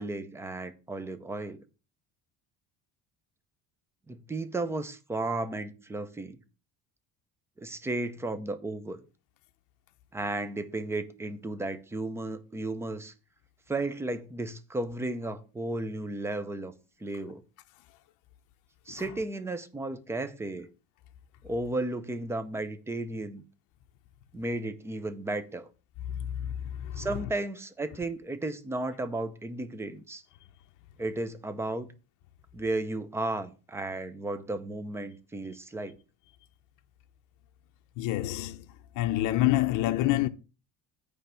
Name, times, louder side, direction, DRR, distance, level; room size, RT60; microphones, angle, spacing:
voice 1, 0.0-1.6 4.1-6.4 7.6-9.0 10.1-13.1 13.7-16.7 17.0-17.4 18.9-20.7 21.4-23.4 24.3-25.7 27.0-30.2 31.0-31.9 32.5-36.0, right 2 dB, 5° right, 0.5 m, -34 dB
voice 2, 26.2-27.1 38.0-38.7 38.9-40.3, left 15 dB, 60° left, 0.6 m, -27 dB
9.1 x 3.4 x 6.8 m
cardioid pair, 170°, 35 cm